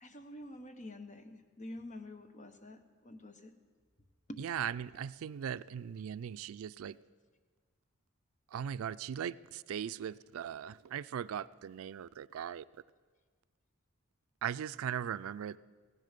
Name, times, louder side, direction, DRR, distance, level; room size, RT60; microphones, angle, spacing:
voice 1, 0.0-3.5 4.3-4.4 4.9-5.1, left 1 dB, 35° left, 1.1 m, -48 dB
voice 2, 4.4-7.0 8.5-12.6 14.4-15.6, right 8 dB, 85° right, 0.3 m, -39 dB
17.0 x 15.5 x 5.2 m
head